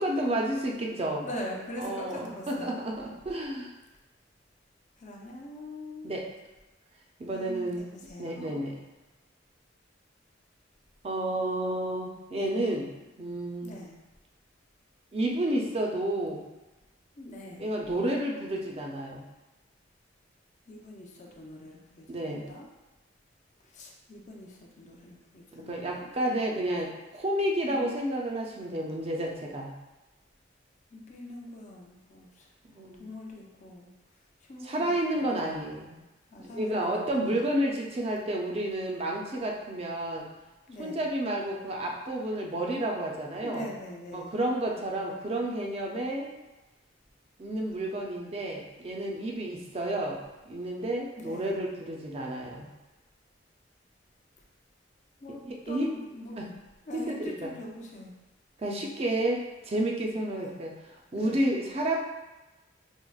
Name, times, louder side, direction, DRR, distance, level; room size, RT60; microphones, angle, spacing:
voice 1, 0.0-1.3 1.8-3.7 6.0-6.2 7.2-7.9 8.2-8.8 11.0-13.7 15.1-16.5 17.6-19.2 22.1-22.5 25.5-29.7 32.7-33.1 34.6-36.0 36.4-40.3 40.8-43.7 44.1-46.3 47.4-50.2 50.5-52.7 55.7-55.9 56.4-56.5 56.9-57.5 58.6-60.7 61.1-62.0, right 1 dB, 35° right, 0 dB, 0.4 m, -31 dB
voice 2, 1.2-2.8 5.0-6.2 7.3-8.7 13.6-13.9 17.2-17.6 20.7-22.7 23.6-26.6 27.7-27.8 30.9-32.5 33.0-33.9 34.4-35.2 36.3-37.6 40.7-41.0 43.4-44.3 51.2-51.6 55.2-55.4 55.7-56.4 56.9-58.1 60.3-60.5 61.1-61.5, left 1 dB, 40° left, -1 dB, 0.5 m, -43 dB
4.5 x 2.1 x 2.3 m, 1.1 s
head